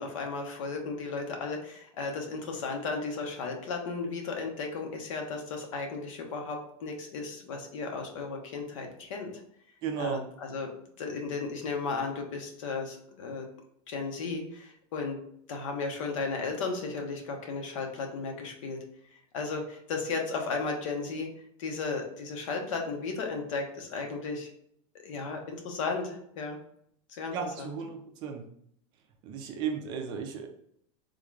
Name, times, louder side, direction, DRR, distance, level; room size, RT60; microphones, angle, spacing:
voice 1, 0.0-9.3 10.0-10.7 11.0-13.5 13.9-15.2 15.5-18.8 19.3-21.3 21.6-24.5 25.0-26.6 27.1-27.7, left 4 dB, 75° left, 3 dB, 0.9 m, -35 dB
voice 2, 9.8-10.2 27.3-28.4 29.2-30.5, right 6 dB, 30° right, 4 dB, 0.4 m, -34 dB
3.6 x 2.4 x 3.2 m, 0.70 s
supercardioid pair, 170°, 17 cm